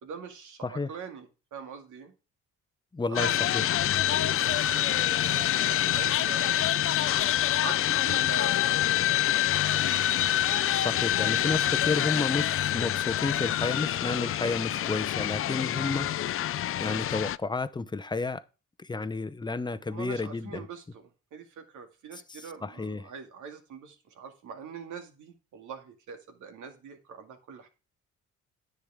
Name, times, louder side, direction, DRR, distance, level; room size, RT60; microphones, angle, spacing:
voice 1, 0.0-2.1 3.1-7.1 7.6-9.9 19.9-21.0 21.3-27.7, right 6 dB, 75° right, 2.3 m, -43 dB
voice 2, 2.9-3.6 10.7-16.1 16.8-18.4 18.8-20.7 22.3-23.1, left 3 dB, 15° left, 0.7 m, -31 dB
sound 1, 3.2-17.4, left 12 dB, 45° left, 0.4 m, -26 dB
10.0 x 8.1 x 3.6 m
cardioid pair, 90°, 30 cm